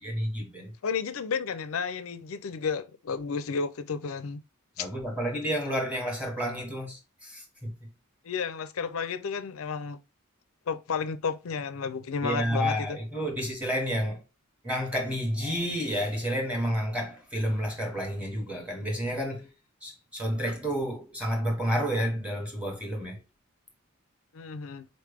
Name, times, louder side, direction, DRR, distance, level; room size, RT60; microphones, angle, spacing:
voice 1, 0.0-0.7 4.8-7.7 12.2-14.2 14.6-19.5 19.8-23.2, equal, 5° right, 1.3 m, -30 dB
voice 2, 0.8-4.4 4.8-4.9 8.2-10.0 10.7-13.0 24.3-24.9, left 5 dB, 70° left, 0.5 m, -32 dB
4.2 x 3.2 x 3.4 m
head